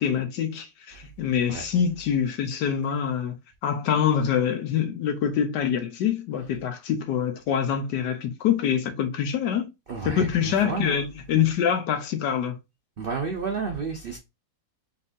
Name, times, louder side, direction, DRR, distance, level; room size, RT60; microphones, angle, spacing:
voice 1, 0.0-3.4 3.6-9.7 10.0-12.6, left 8 dB, 75° left, 1.3 m, -25 dB
voice 2, 9.9-11.0 13.0-14.2, right 5 dB, 65° right, 0.5 m, -31 dB
4.1 x 3.6 x 2.5 m
omnidirectional pair, 1.9 m